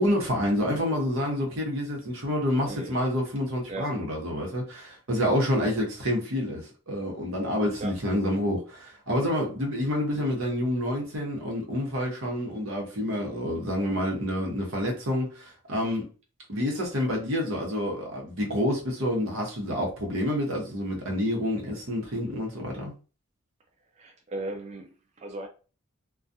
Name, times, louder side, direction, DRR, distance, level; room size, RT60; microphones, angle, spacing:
voice 1, 0.0-16.1 16.5-22.9, left 1 dB, 85° right, 1.0 m, -28 dB
voice 2, 2.7-3.0 3.7-4.0 7.8-8.0 24.0-25.5, right 2 dB, 35° right, 0.3 m, -37 dB
2.3 x 2.3 x 2.6 m
head